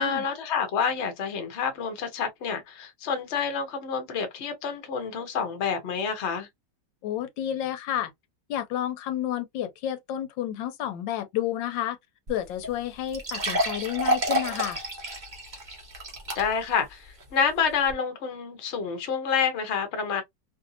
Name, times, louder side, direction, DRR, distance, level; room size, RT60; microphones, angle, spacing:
voice 1, 0.0-6.5 16.4-20.2, left 6 dB, 50° left, 0.9 m, -28 dB
voice 2, 7.0-8.1 8.5-12.0 12.3-14.8, left 11 dB, 85° left, 1.3 m, -30 dB
sound 1, 12.3-12.4 12.6-12.7 13.1-16.7 17.2-17.3 17.9-18.0, equal, 35° right, 0.8 m, -29 dB
3.1 x 2.6 x 2.5 m
omnidirectional pair, 2.0 m